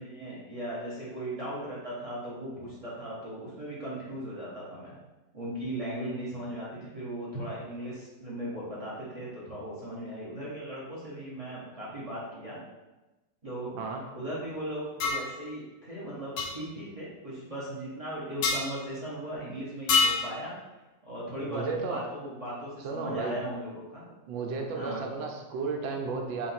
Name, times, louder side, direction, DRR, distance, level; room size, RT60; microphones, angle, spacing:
voice 1, 0.0-4.9 5.3-12.6 13.4-13.8 14.1-20.5 21.0-24.0 24.7-25.0, right 1 dB, 35° right, -9 dB, 0.5 m, -37 dB
sound 1, 15.0-15.3 16.4-16.5 18.4-18.6 19.9-20.3, left 4 dB, 70° left, 0.9 m, -25 dB
voice 2, 21.4-22.1 22.8-23.4 24.3-26.5, right 4 dB, 85° right, 2 dB, 1.3 m, -33 dB
3.9 x 2.5 x 4.1 m, 1.1 s
omnidirectional pair, 2.1 m